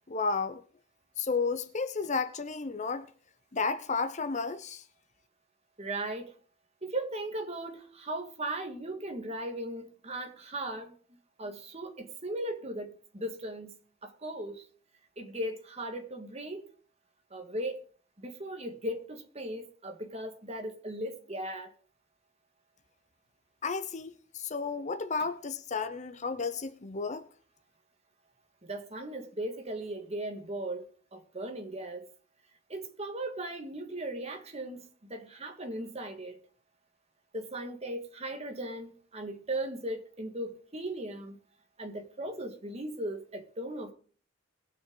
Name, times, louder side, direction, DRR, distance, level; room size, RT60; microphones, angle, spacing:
voice 1, 0.1-0.6 1.2-3.1 3.5-4.8 23.6-27.3, left 4 dB, 35° left, 0.7 m, -32 dB
voice 2, 5.8-6.3 6.8-10.9 11.4-14.7 15.2-16.7 17.3-17.8 18.2-21.7 28.6-30.9 31.1-32.1 32.7-36.4 37.3-41.4 41.8-43.9, right 1 dB, 30° right, 1.8 m, -37 dB
21.0 x 7.4 x 3.9 m
head